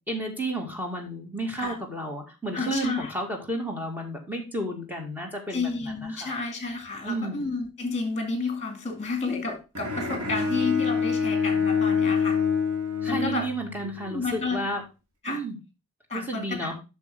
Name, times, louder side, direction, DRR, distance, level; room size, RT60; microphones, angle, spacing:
voice 1, 0.1-6.3 7.0-7.4 13.0-14.8 15.3-15.5 16.1-16.8, right 1 dB, 10° right, 1 dB, 1.9 m, -32 dB
voice 2, 2.5-3.1 5.5-12.4 13.1-13.5 13.8-14.6 15.2-15.4 16.1-16.7, left 3 dB, 30° left, 5 dB, 2.3 m, -31 dB
Bowed string instrument, 9.7-14.0, left 6 dB, 70° right, 2.5 m, -26 dB
8.3 x 6.4 x 3.5 m, 0.29 s
head